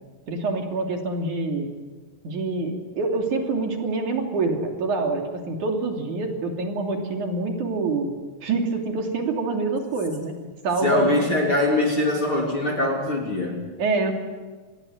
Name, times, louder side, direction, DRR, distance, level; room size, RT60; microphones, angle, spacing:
voice 1, 0.3-1.7 2.2-8.1 8.4-10.3 10.6-11.1 13.8-14.1, right 3 dB, 50° right, 2 dB, 4.1 m, -26 dB
voice 2, 10.8-13.6, left 1 dB, 35° left, 0 dB, 3.7 m, -22 dB
27.0 x 20.5 x 8.0 m, 1.4 s
omnidirectional pair, 4.7 m